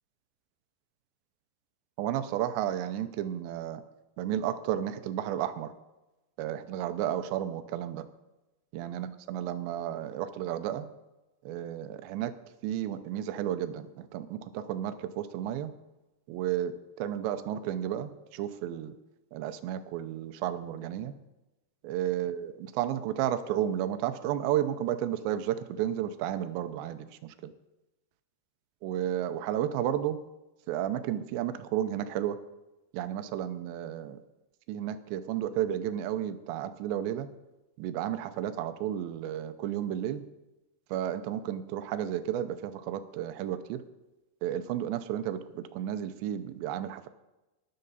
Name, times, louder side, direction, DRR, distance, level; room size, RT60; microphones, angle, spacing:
voice 1, 2.0-3.8 4.2-5.7 6.4-8.1 8.7-10.9 11.5-12.3 12.6-15.7 16.3-18.9 19.3-21.2 21.8-27.5 28.8-30.2 30.7-32.4 32.9-34.2 34.7-37.3 37.8-40.2 40.9-43.8 44.4-47.1, right 11 dB, 85° right, 11 dB, 2.9 m, -32 dB
12.5 x 11.0 x 4.0 m, 1.0 s
omnidirectional pair, 4.9 m